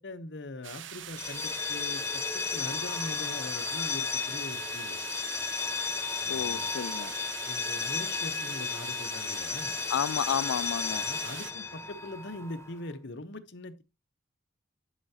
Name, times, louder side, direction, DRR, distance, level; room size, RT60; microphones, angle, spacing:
voice 1, 0.0-5.0 6.2-6.7 7.4-9.8 10.9-13.8, left 2 dB, 60° left, 0.8 m, -42 dB
sound 1, 0.6-11.5, right 11 dB, 60° right, 0.5 m, -43 dB
sound 2, 1.1-12.8, left 5 dB, 15° left, 0.6 m, -34 dB
voice 2, 6.3-7.1 9.9-11.1, left 8 dB, 85° left, 0.3 m, -31 dB
11.0 x 5.7 x 2.8 m
head